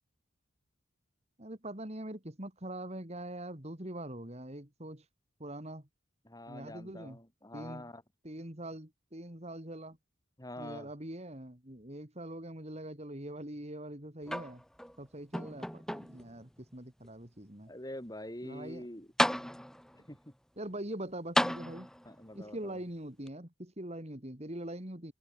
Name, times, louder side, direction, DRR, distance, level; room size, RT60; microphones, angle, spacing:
voice 1, 1.4-5.0 5.4-5.9 6.5-7.2 7.5-7.9 8.2-10.0 10.6-14.6 15.0-17.7 18.4-18.9 20.6-21.9 22.3-25.1, right 1 dB, 30° right, 3.3 m, -43 dB
voice 2, 6.3-8.0 10.4-10.9 17.7-19.1 19.9-20.2 22.1-22.8, left 1 dB, 20° left, 3.6 m, -45 dB
sound 1, 14.3-14.9 15.3-16.3 17.0-17.1 18.7-18.8 19.2-20.0 21.3-22.2 23.3-23.4, equal, ahead, 1.8 m, -33 dB
head